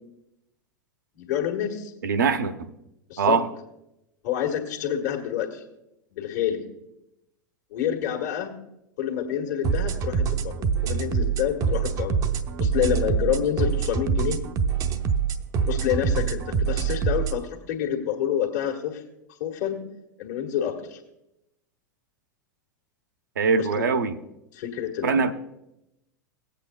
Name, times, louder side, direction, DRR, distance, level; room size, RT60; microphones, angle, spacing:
voice 1, 1.2-1.9 3.1-3.4 4.2-5.6 6.1-6.6 7.7-8.5 9.0-12.2 12.6-14.4 15.7-19.0 19.3-19.8 20.2-21.0 23.6-23.9 24.5-25.3, left 10 dB, 60° left, 1 dB, 1.6 m, -28 dB
voice 2, 2.0-2.5 3.2-3.5 23.4-24.2 25.0-25.3, right 5 dB, 75° right, 8 dB, 0.8 m, -22 dB
sound 1, 9.6-17.4, right 6 dB, 35° right, 0.7 m, -25 dB
19.0 x 8.2 x 2.2 m, 0.86 s
figure-of-eight pair, 85°, 10 cm